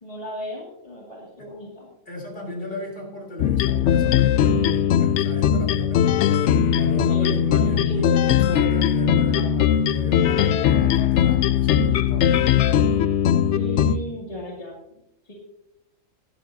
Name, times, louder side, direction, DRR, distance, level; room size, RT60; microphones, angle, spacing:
voice 1, 0.0-1.9 6.9-8.2 13.5-15.3, left 1 dB, 25° left, -4 dB, 2.6 m, -35 dB
voice 2, 2.1-12.8, left 2 dB, 45° left, -1 dB, 3.7 m, -34 dB
sound 1, 3.4-14.0, left 9 dB, 65° left, 0.8 m, -19 dB
17.5 x 11.5 x 2.8 m, 0.86 s
omnidirectional pair, 1.4 m